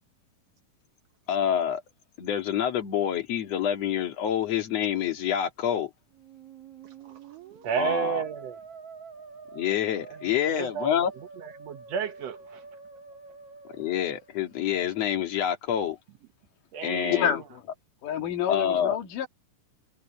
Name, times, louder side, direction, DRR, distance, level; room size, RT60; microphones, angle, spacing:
voice 1, 1.3-1.8 2.2-5.9 7.8-8.2 9.5-11.1 13.8-16.0 16.8-17.4 18.5-19.0, left 9 dB, 55° left, 2.9 m, -27 dB
Musical instrument, 6.1-14.9, right 5 dB, 50° right, 3.0 m, -47 dB
voice 2, 7.0-7.4 7.6-8.6 10.1-10.2 10.5-11.0 11.4-12.6 16.7-17.3, right 7 dB, 65° right, 1.8 m, -32 dB
voice 3, 17.1-17.6 18.0-19.3, left 9 dB, 75° left, 3.5 m, -28 dB
omnidirectional pair, 3.8 m